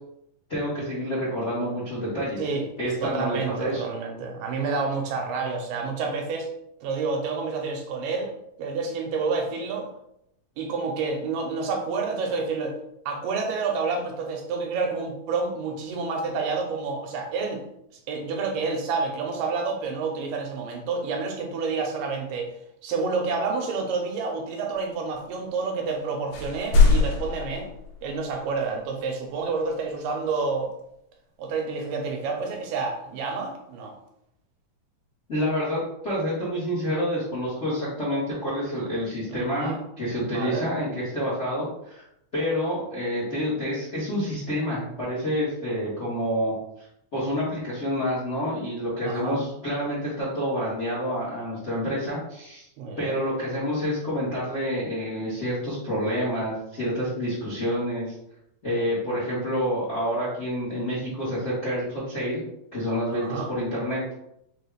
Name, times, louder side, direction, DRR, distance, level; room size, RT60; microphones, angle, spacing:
voice 1, 0.5-2.4 2.8-3.8 35.3-42.0 42.3-46.9 47.1-52.7 53.0-58.1 58.6-62.4 62.7-64.0, equal, 70° left, -9 dB, 0.6 m, -28 dB
voice 2, 3.0-6.5 6.8-8.3 8.6-9.9 10.6-12.8 13.1-17.6 18.1-22.5 22.8-27.7 28.0-30.7 31.4-34.0 39.3-39.8 40.3-40.6 49.0-49.4 52.8-53.2 63.1-63.5, right 4 dB, 90° right, 2 dB, 2.3 m, -29 dB
sound 1, 25.9-26.0 26.3-28.4, left 4 dB, 90° left, 2.3 m, -22 dB
5.4 x 2.3 x 3.3 m, 0.78 s
omnidirectional pair, 3.8 m